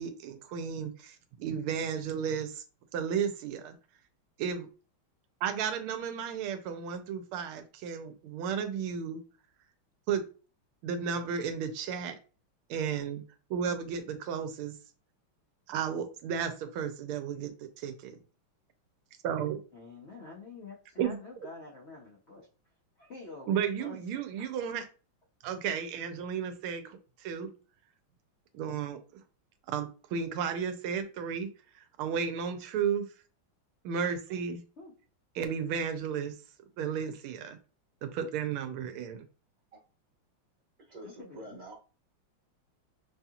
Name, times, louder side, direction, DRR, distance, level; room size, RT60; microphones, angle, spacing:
voice 1, 0.0-2.6 2.9-3.8 4.4-4.7 5.4-9.2 10.1-10.2 10.8-12.2 12.7-13.2 13.5-14.7 15.7-18.2 19.2-19.6 21.0-21.2 23.5-24.8 25.4-27.5 28.5-29.0 29.7-31.5 31.7-33.0 33.8-34.6 35.4-36.3 36.8-37.6 38.0-39.2, right 7 dB, 85° right, 8 dB, 1.5 m, -33 dB
voice 2, 19.7-22.5 23.0-24.0 24.4-24.5 26.7-26.8 34.8-34.9 41.0-41.6, left 3 dB, 65° left, -2 dB, 0.6 m, -47 dB
voice 3, 40.9-41.8, right 1 dB, 50° right, -4 dB, 1.4 m, -46 dB
5.4 x 2.8 x 2.4 m, 0.36 s
omnidirectional pair, 2.3 m